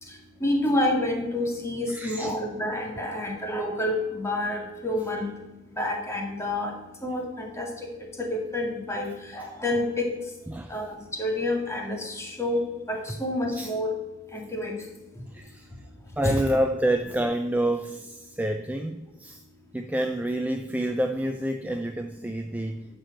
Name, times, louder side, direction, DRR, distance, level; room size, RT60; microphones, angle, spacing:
voice 1, 0.4-5.3 5.7-6.7 7.0-7.7 8.2-10.1 10.7-12.6 12.9-13.9 14.3-14.7 16.2-16.3, left 1 dB, 15° left, 1 dB, 2.0 m, -28 dB
voice 2, 1.9-2.3 10.5-10.8 13.5-13.7 15.3-15.7 16.2-19.4 19.7-22.9, right 1 dB, 10° right, 5 dB, 0.5 m, -28 dB
12.0 x 4.7 x 7.8 m, 1.1 s
head